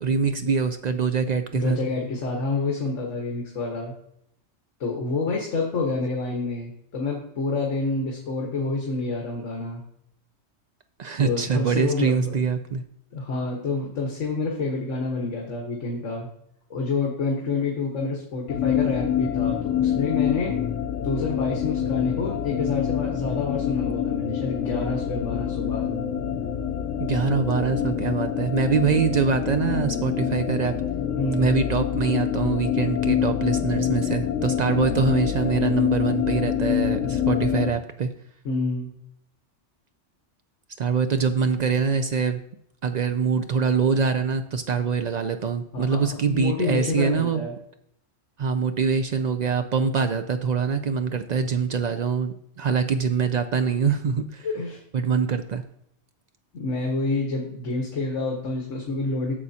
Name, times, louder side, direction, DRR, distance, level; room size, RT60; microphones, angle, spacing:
voice 1, 0.0-1.8 11.0-12.8 27.0-30.8 31.3-38.1 40.8-42.4 42.8-47.4 48.4-54.6 54.9-55.6, right 6 dB, 85° right, 8 dB, 0.3 m, -24 dB
voice 2, 1.5-3.9 4.8-9.8 11.2-12.4 13.1-16.3 16.7-20.6 21.0-25.9 31.1-31.6 38.4-38.9 45.7-47.5 54.4-54.8 56.5-59.3, left 3 dB, 75° left, 0 dB, 1.6 m, -28 dB
sound 1, 18.5-37.7, left 9 dB, 90° left, 1.0 m, -26 dB
11.0 x 7.1 x 2.8 m, 0.72 s
omnidirectional pair, 1.3 m